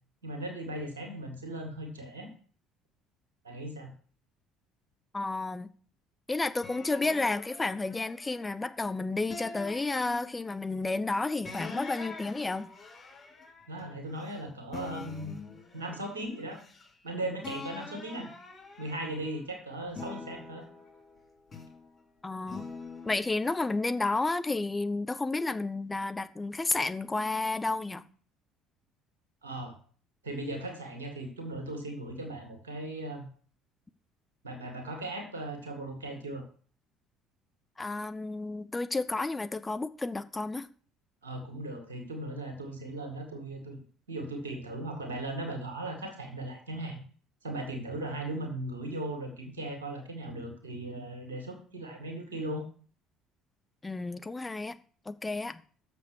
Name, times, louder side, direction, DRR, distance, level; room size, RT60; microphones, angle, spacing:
voice 1, 0.2-2.3 3.4-3.9 13.7-15.3 15.7-16.6 17.0-18.3 18.8-20.6 29.4-29.8 30.2-33.2 34.4-36.4 41.2-43.8 44.1-47.0 47.4-52.6, right 1 dB, 80° right, 2.0 m, -38 dB
voice 2, 5.1-5.7 6.3-12.7 22.2-22.7 23.0-28.0 37.8-40.7 53.8-54.8 55.1-55.6, left 3 dB, 20° left, 0.7 m, -31 dB
sound 1, 6.6-8.8 9.3-10.7 11.4-14.4 14.7-17.1 17.4-19.4 19.9-21.9 22.5-23.6, left 4 dB, 35° left, 2.7 m, -45 dB
7.1 x 6.8 x 6.3 m
figure-of-eight pair, 55°, 0 cm